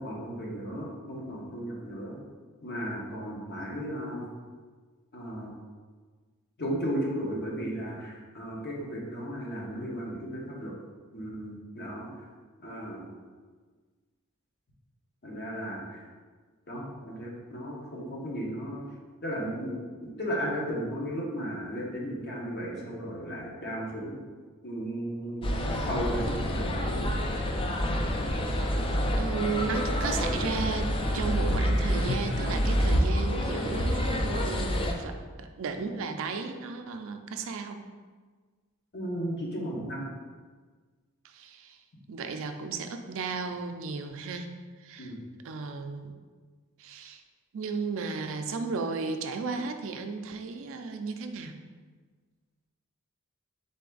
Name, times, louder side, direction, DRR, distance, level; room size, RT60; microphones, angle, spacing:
voice 1, 0.0-2.2 2.6-4.3 5.1-5.5 6.6-10.7 11.1-12.1 12.6-13.1 15.2-16.0 16.7-18.8 19.2-19.7 20.2-24.2 24.6-27.4 38.9-40.1 45.0-45.2, equal, 50° left, -3 dB, 1.1 m, -35 dB
sound 1, 25.4-34.9, equal, 25° left, 0.4 m, -28 dB
voice 2, 29.2-37.8 41.2-41.8 42.1-44.5 44.8-45.1 45.4-46.1 46.8-47.2 47.5-51.5, right 4 dB, 65° right, 6 dB, 0.4 m, -34 dB
4.0 x 3.3 x 3.8 m, 1.5 s
head